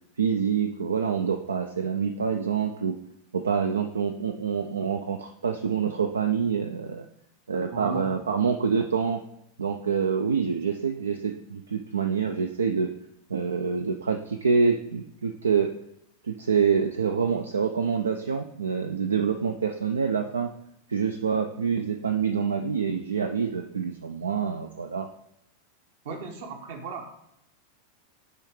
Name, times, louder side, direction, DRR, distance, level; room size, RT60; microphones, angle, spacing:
voice 1, 0.2-3.0 3.3-7.1 7.5-9.2 9.6-12.9 13.3-15.7 16.2-20.5 20.9-25.1, right 6 dB, 70° right, 6 dB, 0.3 m, -26 dB
voice 2, 7.7-8.1 26.0-27.2, right 3 dB, 55° right, 5 dB, 1.0 m, -36 dB
9.6 x 3.5 x 3.2 m, 0.79 s
figure-of-eight pair, 90°, 0 cm